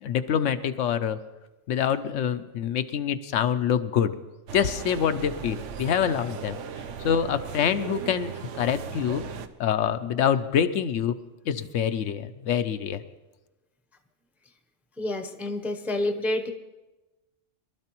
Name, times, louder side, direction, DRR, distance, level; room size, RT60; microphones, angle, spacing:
voice 1, 0.0-1.2 1.7-4.2 4.5-6.6 7.0-9.2 9.6-11.2 11.5-13.0, left 8 dB, 85° left, 10 dB, 1.0 m, -26 dB
sound 1, 4.5-9.5, right 7 dB, 75° right, 1.0 m, -37 dB
voice 2, 15.0-16.5, left 1 dB, ahead, 6 dB, 0.5 m, -28 dB
22.5 x 12.5 x 3.0 m, 1.1 s
omnidirectional pair, 1.3 m